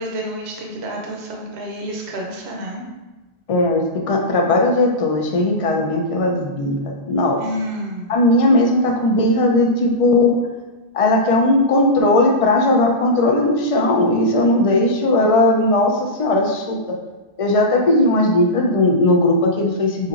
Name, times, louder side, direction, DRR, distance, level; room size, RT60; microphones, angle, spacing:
voice 1, 0.0-2.9 7.4-8.2, equal, 65° right, -1 dB, 0.9 m, -29 dB
voice 2, 3.5-7.4 8.1-10.3 10.9-16.8 17.4-20.1, left 2 dB, 45° left, 1 dB, 0.4 m, -17 dB
5.3 x 2.9 x 2.5 m, 1.2 s
omnidirectional pair, 1.2 m